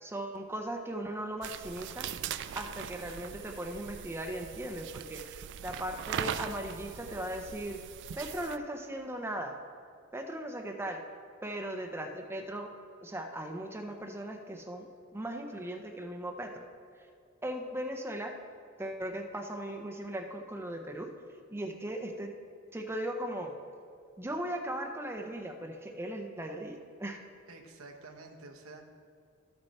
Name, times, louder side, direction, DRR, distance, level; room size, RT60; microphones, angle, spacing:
voice 1, 0.0-2.1 2.5-5.2 5.6-7.8 8.2-9.6 10.1-11.0 11.4-12.7 13.0-16.7 17.0-17.1 17.4-18.3 18.8-21.1 21.5-22.3 22.7-23.5 24.2-27.2, right 1 dB, 10° right, 3 dB, 0.6 m, -38 dB
sound 1, 1.4-8.6, right 9 dB, 55° right, 0.3 m, -40 dB
voice 2, 27.5-28.9, right 3 dB, 75° right, 3 dB, 0.9 m, -49 dB
12.5 x 6.5 x 4.1 m, 2.3 s
head